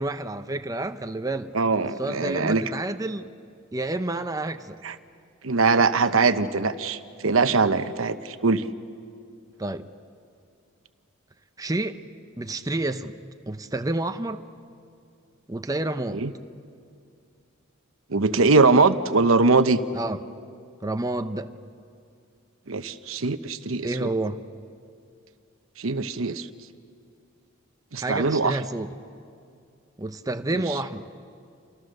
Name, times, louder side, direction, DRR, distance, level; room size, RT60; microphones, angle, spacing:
voice 1, 0.0-1.5 2.0-3.3 3.7-4.8 9.6-9.9 11.6-12.0 12.4-13.2 13.5-14.4 15.5-16.2 19.9-20.2 20.8-21.5 23.8-24.4 28.0-28.9 30.0-31.1, right 2 dB, 15° right, 8 dB, 0.7 m, -29 dB
voice 2, 1.5-2.6 4.8-4.9 5.4-8.7 16.1-16.3 18.1-19.8 22.7-24.1 25.8-26.5 27.9-28.6 30.5-30.6, right 3 dB, 80° right, 11 dB, 1.0 m, -22 dB
29.0 x 27.0 x 6.6 m, 2.4 s
head